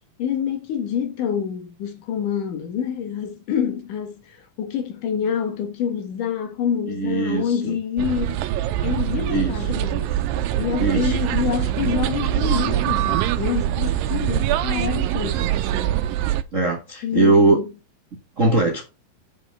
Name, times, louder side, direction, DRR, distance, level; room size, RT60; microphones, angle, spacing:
voice 1, 0.2-8.4 8.8-10.2 10.5-15.9 17.0-17.7, left 8 dB, 65° left, 2.8 m, -27 dB
voice 2, 6.9-7.8 9.3-9.5 10.8-11.2 16.5-17.6 18.4-18.9, right 3 dB, 50° right, 0.9 m, -20 dB
sound 1, 8.0-16.4, right 12 dB, 80° right, 2.3 m, -23 dB
7.4 x 5.5 x 5.4 m
omnidirectional pair, 4.2 m